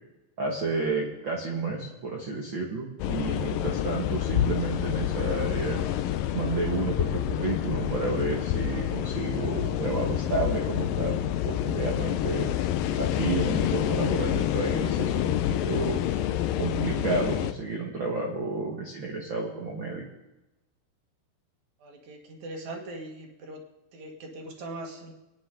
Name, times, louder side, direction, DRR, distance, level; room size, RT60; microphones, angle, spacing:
voice 1, 0.4-5.8 6.3-11.2 11.4-12.5 13.0-16.0 16.6-20.0, right 3 dB, 90° right, -1 dB, 1.0 m, -31 dB
sound 1, 3.0-17.5, left 11 dB, 80° left, 2.0 m, -28 dB
voice 2, 21.8-23.6 23.9-25.1, right 2 dB, 55° right, 2 dB, 2.5 m, -40 dB
24.0 x 9.7 x 3.8 m, 0.99 s
omnidirectional pair, 4.8 m